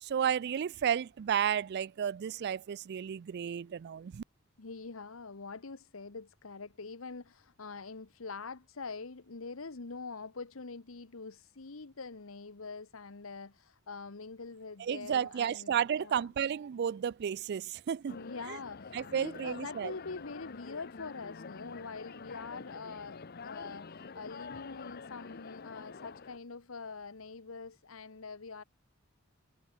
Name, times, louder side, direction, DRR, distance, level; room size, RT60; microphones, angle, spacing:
voice 1, 0.1-4.2 14.8-18.2 18.5-18.6 18.9-19.9, right 8 dB, 50° right, 0.3 m, -32 dB
voice 2, 4.6-16.3 18.1-28.6, left 4 dB, 80° left, 1.1 m, -44 dB
sound 1, 18.1-26.4, left 5 dB, 50° left, 0.8 m, -47 dB
head